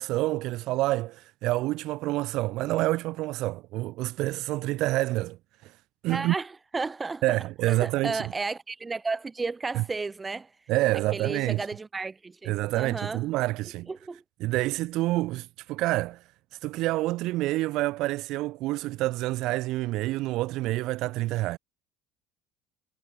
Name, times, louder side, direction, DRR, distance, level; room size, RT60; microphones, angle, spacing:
voice 1, 0.0-5.4 5.6-5.7 6.0-6.3 7.2-8.2 9.8-9.9 10.7-11.6 12.5-13.9 14.4-16.2 16.6-21.6, right 18 dB, 65° right, 1.9 m, -27 dB
voice 2, 6.1-10.5 11.1-13.2 13.9-14.2, right 4 dB, 20° right, 1.2 m, -33 dB
supercardioid pair, 90°, 0 cm